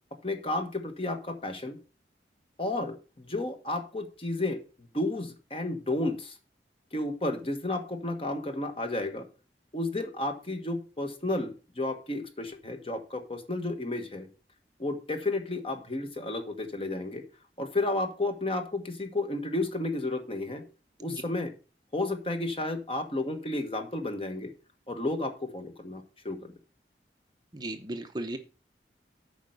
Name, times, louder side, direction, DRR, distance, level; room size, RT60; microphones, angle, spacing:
voice 1, 0.2-1.8 2.6-4.6 4.9-6.3 6.9-9.2 9.7-14.3 14.8-17.2 17.6-20.6 21.0-21.5 21.9-24.5 24.9-26.5, left 2 dB, 30° left, 6 dB, 1.3 m, -32 dB
voice 2, 27.5-28.4, right 1 dB, 25° right, 7 dB, 0.8 m, -35 dB
8.6 x 5.1 x 6.6 m, 0.34 s
head